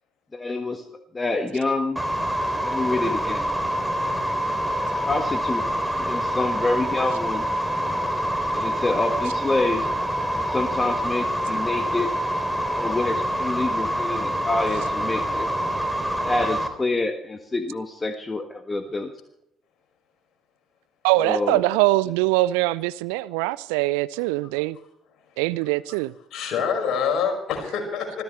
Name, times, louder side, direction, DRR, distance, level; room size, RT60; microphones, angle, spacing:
voice 1, 0.3-0.8 1.1-2.0 2.6-3.4 5.0-7.5 8.5-9.9 10.3-12.1 12.7-15.5 16.2-19.1 21.2-22.1, left 2 dB, 20° left, 1.6 m, -27 dB
sound 1, 2.0-16.7, equal, 5° right, 3.1 m, -26 dB
voice 2, 21.0-24.8 25.4-26.1, right 18 dB, 70° right, 0.5 m, -22 dB
voice 3, 26.3-28.2, left 6 dB, 55° left, 5.6 m, -26 dB
25.5 x 15.5 x 3.3 m
figure-of-eight pair, 50°, 0 cm